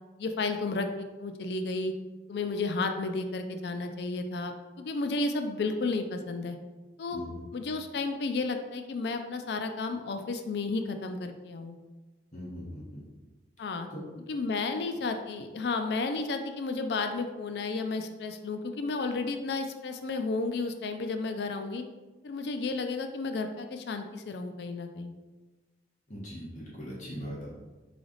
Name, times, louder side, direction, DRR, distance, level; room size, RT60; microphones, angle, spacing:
voice 1, 0.2-1.9 2.3-6.6 7.0-7.2 7.5-11.8 13.6-13.9 14.3-21.8 22.2-25.1, left 3 dB, 65° left, 7 dB, 0.4 m, -32 dB
voice 2, 12.3-13.0 13.9-14.0 26.1-27.5, equal, 45° left, -6 dB, 1.2 m, -40 dB
3.9 x 3.3 x 3.8 m, 1.2 s
head